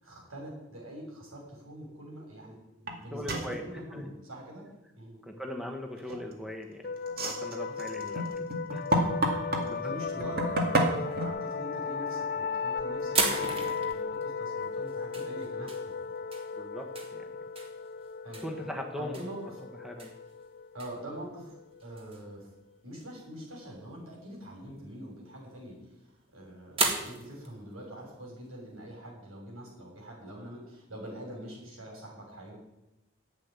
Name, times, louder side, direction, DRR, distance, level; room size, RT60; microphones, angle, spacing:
voice 1, 0.0-2.6 2.8-4.7 5.0-5.2 8.0-8.4 9.5-15.9 18.2-18.4 18.9-19.5 20.7-21.5 21.8-22.5 22.8-25.8 26.0-32.6, right 1 dB, 90° right, -1 dB, 6.4 m, -44 dB
sound 1, 2.9-3.0 3.3-3.5 6.0-6.4 7.0-9.7 10.2-11.3, right 1 dB, 45° right, 2.2 m, -29 dB
voice 2, 3.1-3.7 3.9-4.1 5.2-6.9 7.2-9.0 9.3-9.9 16.6-17.2 18.4-19.2 19.8-20.2, left 1 dB, ahead, 3 dB, 1.2 m, -40 dB
sound 2, 6.8-22.2, left 5 dB, 45° left, 0.5 m, -36 dB
sound 3, 9.9-10.7 11.4-12.0 12.4-12.6 13.1-21.3 21.8-22.3 22.7-22.8 23.0-23.1 23.3-23.6 23.9-24.1 25.0-26.2 26.7-28.8, right 3 dB, 25° right, 1.8 m, -35 dB
11.0 x 8.2 x 9.6 m, 0.91 s
head